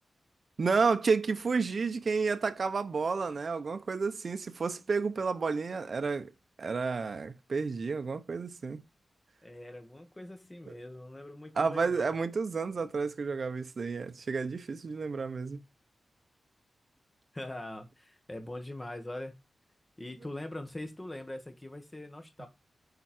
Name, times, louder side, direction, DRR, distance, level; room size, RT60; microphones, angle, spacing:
voice 1, 0.6-6.3 6.6-8.8 11.6-15.6, right 4 dB, 45° right, 0.9 m, -31 dB
voice 2, 9.4-12.1 17.3-19.3 20.0-22.5, left 1 dB, 15° left, 1.6 m, -42 dB
9.1 x 4.6 x 4.4 m
wide cardioid pair, 150°, 0 cm